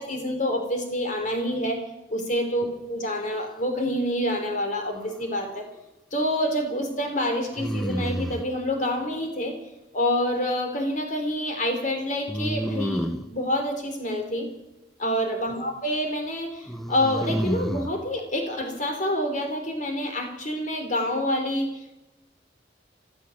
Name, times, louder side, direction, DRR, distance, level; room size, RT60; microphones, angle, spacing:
voice 1, 0.0-1.8 2.1-5.6 6.1-9.5 9.9-14.5 15.0-22.0, left 1 dB, 40° left, 5 dB, 3.3 m, -27 dB
sound 1, 4.8-5.5 7.5-8.5 12.3-13.3 16.7-17.9, equal, ahead, 0.8 m, -29 dB
15.0 x 13.5 x 7.1 m, 0.97 s
head